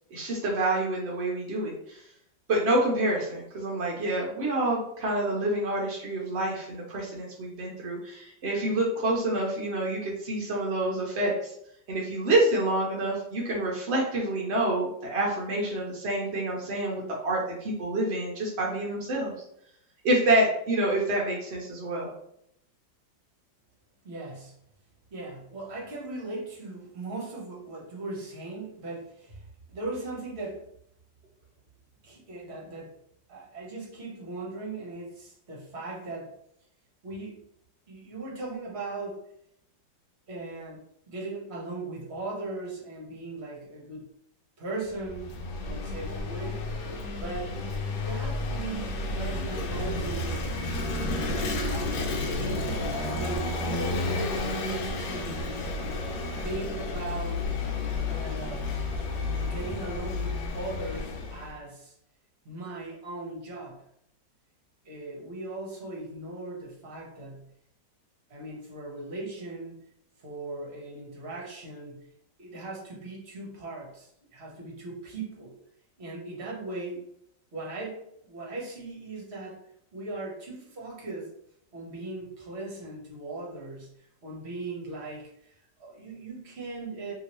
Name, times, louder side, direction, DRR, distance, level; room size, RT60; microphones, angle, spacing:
voice 1, 0.1-2.0 2.5-11.5 11.9-19.3 20.0-22.1, right 1 dB, 70° right, -3 dB, 0.6 m, -27 dB
voice 2, 24.0-24.6 25.1-30.7 32.0-33.0 33.3-36.3 37.0-37.4 37.9-39.2 40.3-44.1 44.6-45.4 45.6-46.6 47.1-47.5 47.9-50.4 51.2-52.7 53.1-55.5 56.4-57.5 58.0-58.7 59.4-62.0 62.4-63.8 64.8-67.5 68.3-69.8 70.2-72.0 72.4-75.5 76.0-77.1 77.5-79.6 79.9-81.3 81.7-87.1, right 2 dB, 45° right, -3 dB, 0.9 m, -38 dB
Vehicle / Engine, 44.9-61.5, left 2 dB, 75° left, 1.2 m, -31 dB
2.9 x 2.8 x 2.9 m, 0.71 s
omnidirectional pair, 2.0 m